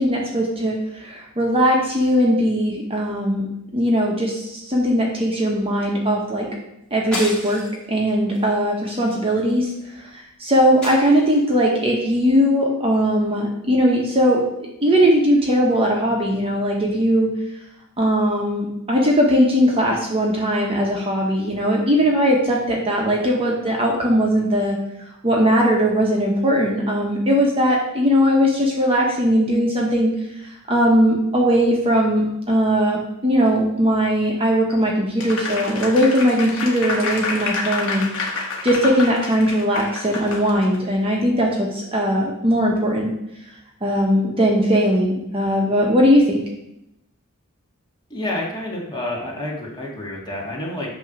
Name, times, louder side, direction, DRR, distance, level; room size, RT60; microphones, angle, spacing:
voice 1, 0.0-3.5 3.7-6.5 6.9-7.6 7.9-9.7 10.4-14.4 14.8-17.3 18.0-24.8 25.2-30.1 30.7-38.3 38.6-43.1 43.8-46.4, equal, 25° right, -1 dB, 1.2 m, -19 dB
sound 1, 7.1-7.9 8.3-8.5 8.8-9.8 10.8-11.6, left 1 dB, 5° left, 2.8 m, -33 dB
Applause, 35.2-40.8, left 3 dB, 60° left, 1.4 m, -28 dB
voice 2, 48.1-50.9, left 1 dB, 20° left, -3 dB, 1.8 m, -29 dB
9.0 x 3.1 x 6.1 m, 0.84 s
head